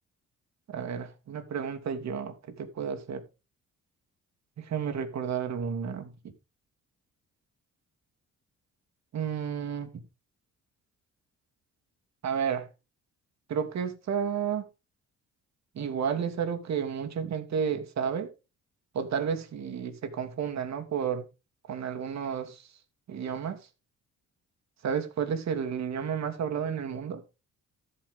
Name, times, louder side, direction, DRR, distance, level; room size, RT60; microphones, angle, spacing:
voice 1, 0.7-3.2 4.6-6.1 9.1-9.9 12.2-12.7 13.5-14.7 15.7-18.3 18.9-21.2 21.7-22.7 23.1-23.6 24.8-27.2, right 7 dB, 60° right, 2.8 m, -31 dB
13.5 x 8.9 x 3.6 m
cardioid pair, 90°, 30 cm